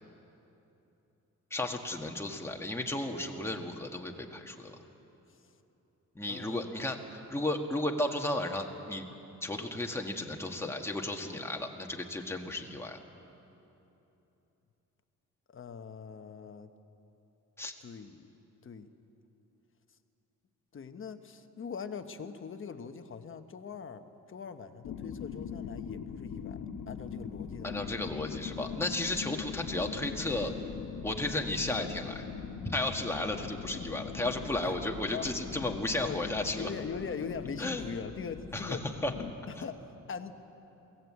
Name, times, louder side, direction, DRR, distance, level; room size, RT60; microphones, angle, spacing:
voice 1, 1.5-4.8 6.1-9.1 9.4-13.0 17.6-17.7 27.6-30.5 31.0-32.2 32.7-36.7 37.6-37.8 38.5-39.1, left 1 dB, 10° left, 2 dB, 1.5 m, -34 dB
voice 2, 6.2-6.6 15.5-16.7 17.8-18.3 18.6-18.9 20.7-27.8 34.6-34.7 35.1-35.3 36.0-36.2 36.5-38.8 39.5-39.8 40.1-40.3, left 6 dB, 40° left, 8 dB, 1.1 m, -41 dB
sound 1, 24.8-39.3, left 7 dB, 90° left, 1.1 m, -41 dB
22.5 x 17.0 x 8.4 m, 3.0 s
cardioid pair, 130°, 32 cm